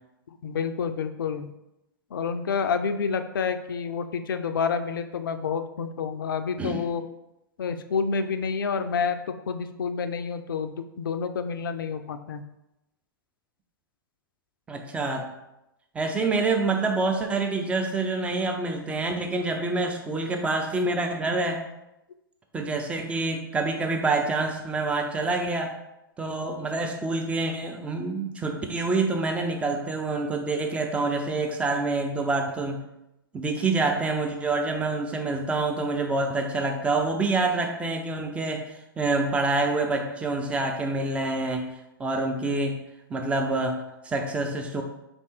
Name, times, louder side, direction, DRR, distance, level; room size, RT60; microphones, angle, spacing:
voice 1, 0.4-1.5 2.1-7.1 7.6-9.2 9.5-12.4, left 6 dB, 65° left, 9 dB, 0.4 m, -28 dB
voice 2, 14.7-15.3 15.9-21.6 22.5-25.7 26.2-32.8 33.3-38.7 39.0-41.7 42.0-42.8 43.1-44.8, right 3 dB, 10° right, 3 dB, 0.5 m, -27 dB
3.4 x 2.9 x 4.3 m, 0.91 s
figure-of-eight pair, 105°, 12 cm